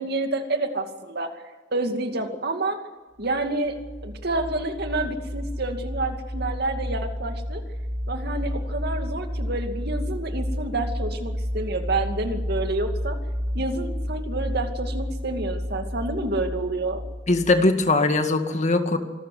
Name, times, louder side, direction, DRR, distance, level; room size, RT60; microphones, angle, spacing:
voice 1, 0.0-1.4 1.7-2.8 3.2-3.8 4.0-7.6 8.1-13.2 13.5-17.0, right 2 dB, 60° right, 6 dB, 2.5 m, -28 dB
sound 1, 3.3-17.8, equal, 20° right, 1.3 m, -31 dB
voice 2, 17.3-19.0, left 2 dB, 40° left, 7 dB, 2.0 m, -20 dB
26.0 x 14.0 x 9.6 m, 1.3 s
head